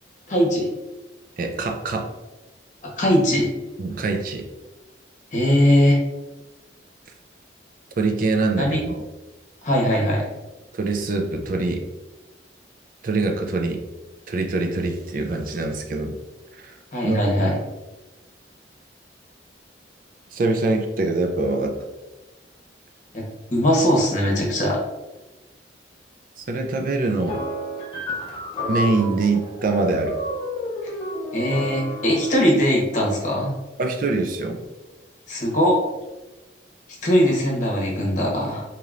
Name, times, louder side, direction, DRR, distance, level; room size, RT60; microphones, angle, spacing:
voice 1, 0.3-0.7 3.0-3.5 5.3-6.0 8.6-8.8 9.6-10.2 16.9-17.5 23.1-23.2 23.5-24.8 31.3-33.5 35.3-35.8 37.0-38.6, equal, 40° left, -3 dB, 1.0 m, -20 dB
voice 2, 1.4-2.1 3.8-4.5 8.0-9.0 10.7-11.8 13.0-13.8 14.3-16.2 16.6-16.7 17.0-17.2 17.5-17.6 20.3-21.8 26.4-27.4 28.7-30.2 33.8-34.6, right 3 dB, 45° right, 3 dB, 0.4 m, -24 dB
sound 1, 27.3-32.5, left 1 dB, 25° left, 0.7 m, -31 dB
4.7 x 2.9 x 2.5 m, 1.1 s
head